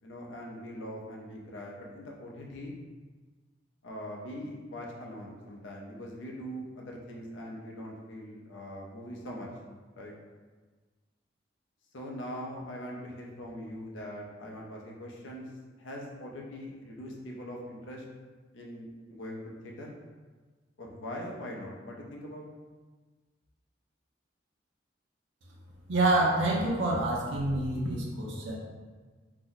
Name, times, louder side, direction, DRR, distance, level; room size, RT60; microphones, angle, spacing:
voice 1, 0.0-2.7 3.8-9.5 9.9-10.1 11.9-15.5 15.8-18.0 18.5-20.0 20.8-22.5, equal, 85° left, -1 dB, 0.6 m, -42 dB
voice 2, 25.9-28.6, right 2 dB, 85° right, -3 dB, 0.5 m, -27 dB
2.7 x 2.0 x 3.9 m, 1.4 s
head